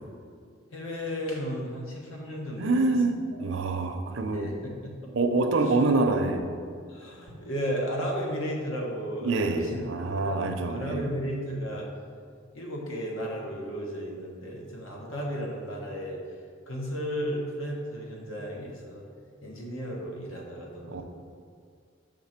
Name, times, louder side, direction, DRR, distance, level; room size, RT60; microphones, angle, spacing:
voice 1, 0.7-2.8 3.1-3.4 4.3-5.1 6.9-9.8 10.2-11.9 12.5-16.2 16.7-19.0 19.4-21.0, equal, 85° left, -1 dB, 1.2 m, -34 dB
voice 2, 2.6-4.5 5.1-6.5 9.2-11.1 20.9-21.0, right 3 dB, 70° right, 6 dB, 0.5 m, -26 dB
5.8 x 3.8 x 5.8 m, 2.2 s
head